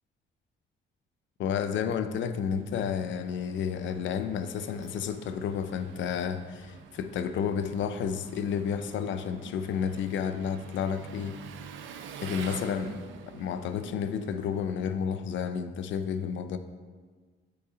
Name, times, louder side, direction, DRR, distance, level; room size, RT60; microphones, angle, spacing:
voice 1, 1.4-11.4 12.2-13.0 13.3-16.6, left 7 dB, 70° left, 10 dB, 0.5 m, -31 dB
Engine, 2.1-15.6, right 6 dB, 75° right, 0.6 m, -48 dB
6.8 x 4.8 x 3.8 m, 1.5 s
cardioid pair, 90°, 20 cm